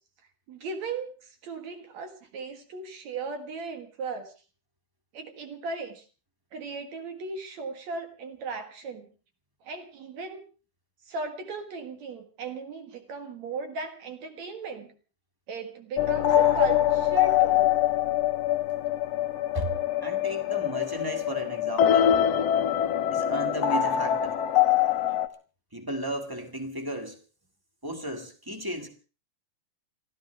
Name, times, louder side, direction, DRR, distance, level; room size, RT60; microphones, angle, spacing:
voice 1, 0.5-4.3 5.1-6.0 6.5-9.1 9.6-10.4 11.1-14.9 15.5-17.7 25.1-25.2, right 4 dB, 55° right, 6 dB, 2.6 m, -37 dB
sound 1, 16.0-25.3, left 11 dB, 75° left, 1.5 m, -24 dB
voice 2, 20.0-22.2 23.1-24.4 25.7-27.2 27.8-28.9, right 1 dB, 10° right, 5 dB, 1.1 m, -34 dB
29.5 x 14.0 x 3.4 m, 0.36 s
omnidirectional pair, 4.1 m